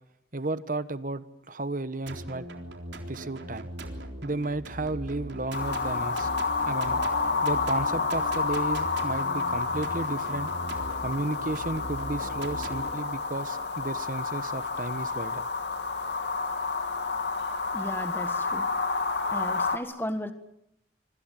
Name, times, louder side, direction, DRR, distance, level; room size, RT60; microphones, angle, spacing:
voice 1, 0.3-2.5 3.1-3.7 4.2-6.3 6.7-7.0 7.4-10.5 11.0-15.4, right 2 dB, 45° right, 13 dB, 1.2 m, -33 dB
sound 1, 2.1-12.9, right 1 dB, 65° right, 3.7 m, -40 dB
sound 2, 5.5-19.8, left 4 dB, 65° left, 2.7 m, -30 dB
voice 2, 17.7-18.7 19.3-20.3, equal, 10° left, 8 dB, 1.5 m, -35 dB
26.5 x 25.5 x 7.6 m, 0.79 s
head